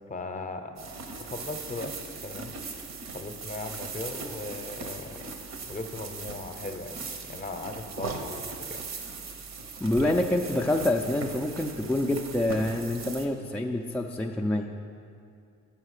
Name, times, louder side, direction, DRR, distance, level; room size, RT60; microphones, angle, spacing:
voice 1, 0.1-1.9 2.2-2.9 3.1-5.3 5.7-8.8, left 2 dB, 25° left, 6 dB, 0.7 m, -38 dB
sound 1, 0.8-13.3, right 4 dB, 65° right, 0.9 m, -39 dB
voice 2, 9.8-14.7, left 1 dB, 5° left, 0 dB, 0.3 m, -27 dB
7.3 x 5.6 x 6.5 m, 2.4 s
cardioid pair, 90°, 30 cm